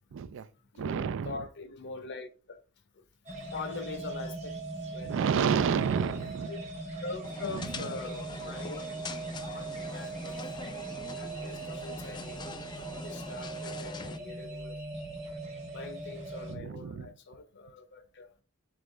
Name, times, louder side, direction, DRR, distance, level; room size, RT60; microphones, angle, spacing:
voice 1, 0.1-0.5 0.8-1.4 5.0-6.5 7.5-7.9 16.5-17.1, right 6 dB, 65° right, 0.3 m, -30 dB
voice 2, 0.7-2.6 3.0-3.1 3.5-4.6 4.9-5.6 6.5-6.7 7.0-9.0 9.4-10.7 11.1-12.4 13.0-14.8 15.7-18.3, left 3 dB, 55° left, 0.7 m, -43 dB
sound 1, 3.3-16.6, right 3 dB, 35° right, 1.1 m, -40 dB
sound 2, 7.2-14.2, left 4 dB, 20° left, 0.3 m, -44 dB
3.7 x 3.6 x 3.1 m
head